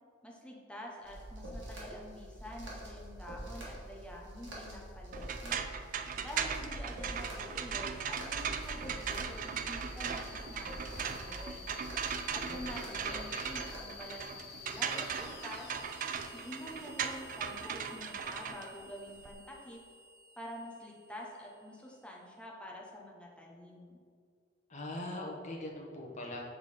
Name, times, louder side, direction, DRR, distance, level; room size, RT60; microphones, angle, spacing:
voice 1, 0.2-5.6 6.2-11.7 12.3-15.7 16.3-19.8 20.4-23.9, left 1 dB, 5° left, -2 dB, 0.9 m, -47 dB
sound 1, 1.0-13.8, right 1 dB, 65° right, 1.7 m, -46 dB
sound 2, 5.1-19.3, right 7 dB, 45° right, 0.4 m, -38 dB
sound 3, 6.0-22.3, left 4 dB, 55° left, 0.7 m, -53 dB
voice 2, 12.3-13.5 24.7-26.4, left 1 dB, 40° left, -2 dB, 1.1 m, -42 dB
7.1 x 3.7 x 4.9 m, 2.1 s
head